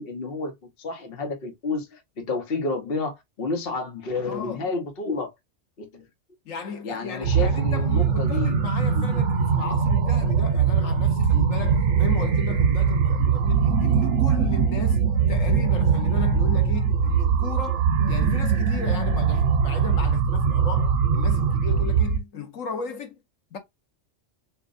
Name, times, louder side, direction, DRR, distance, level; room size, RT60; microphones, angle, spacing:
voice 1, 0.0-5.3 5.8-6.0 6.8-8.6 8.9-9.0, left 3 dB, 50° left, 1.3 m, -30 dB
voice 2, 4.3-4.7 6.4-15.0 15.3-23.2 23.5-23.6, left 5 dB, 90° left, 1.6 m, -36 dB
sound 1, 7.2-22.2, right 6 dB, 65° right, 1.1 m, -21 dB
7.0 x 2.4 x 2.6 m
omnidirectional pair, 1.3 m